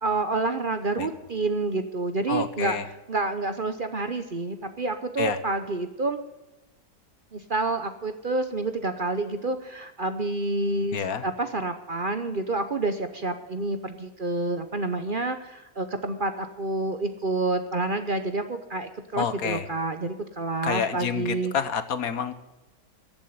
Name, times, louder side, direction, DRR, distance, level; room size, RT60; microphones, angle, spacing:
voice 1, 0.0-2.8 3.1-6.2 7.3-21.6, right 2 dB, 40° right, 9 dB, 0.9 m, -28 dB
voice 2, 2.3-2.8 5.2-5.4 10.9-11.2 19.2-19.6 20.6-22.3, left 7 dB, 65° left, 12 dB, 1.4 m, -28 dB
14.5 x 7.4 x 9.5 m, 1.0 s
omnidirectional pair, 1.6 m